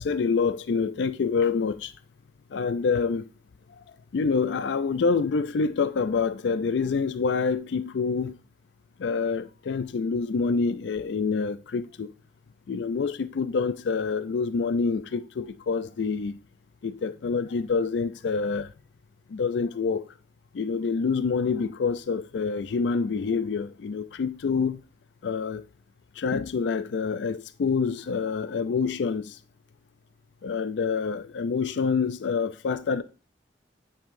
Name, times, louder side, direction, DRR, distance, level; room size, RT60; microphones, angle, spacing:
voice 1, 0.0-1.9 2.5-3.2 4.1-8.4 9.0-12.1 12.7-16.4 16.8-18.7 19.3-20.0 20.5-24.8 25.2-25.6 26.2-29.4 30.4-33.0, left 5 dB, 70° left, 0.4 m, -27 dB
8.7 x 5.4 x 2.6 m
head